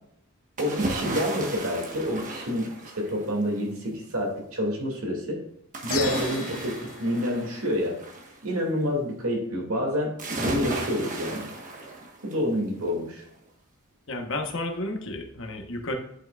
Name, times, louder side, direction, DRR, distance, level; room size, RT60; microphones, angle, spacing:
sound 1, 0.6-3.4 5.7-8.4 10.2-12.5 12.9-13.0, right 2 dB, 40° right, 1.4 m, -34 dB
voice 1, 0.6-5.4 5.8-8.0 8.4-11.5 12.2-13.2, equal, 90° right, -1 dB, 2.6 m, -28 dB
sound 2, 5.9-8.4, left 9 dB, 85° left, 0.8 m, -38 dB
voice 2, 14.1-15.9, left 2 dB, 65° left, 4 dB, 1.3 m, -32 dB
10.5 x 5.8 x 2.5 m, 0.77 s
head